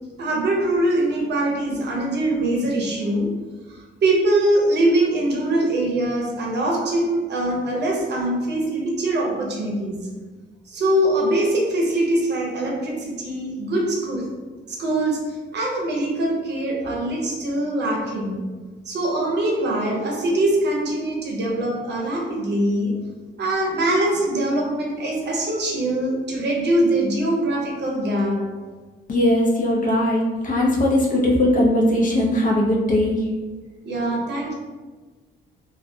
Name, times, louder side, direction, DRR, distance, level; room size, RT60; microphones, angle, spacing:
voice 1, 0.2-3.3 3.7-10.0 10.7-14.3 14.7-18.4 18.8-23.0 23.4-28.4 33.8-34.5, right 1 dB, 60° right, -2 dB, 0.7 m, -23 dB
voice 2, 29.1-33.2, left 1 dB, 40° left, -3 dB, 0.6 m, -19 dB
2.4 x 2.1 x 2.6 m, 1.3 s
cardioid pair, 90°, 20 cm